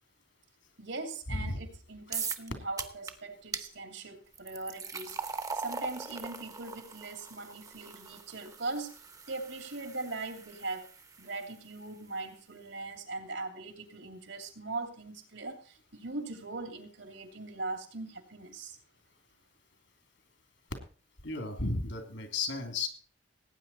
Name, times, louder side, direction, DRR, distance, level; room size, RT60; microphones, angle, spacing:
voice 1, 0.8-8.9 9.3-10.9 11.2-18.8, right 3 dB, 80° right, 6 dB, 2.8 m, -40 dB
sound 1, 2.1-2.5 2.8-3.1 3.5-3.7 4.3-11.5, right 5 dB, 20° right, 0.8 m, -41 dB
voice 2, 21.2-22.9, left 3 dB, 75° left, 6 dB, 3.0 m, -34 dB
18.0 x 9.1 x 4.3 m, 0.39 s
head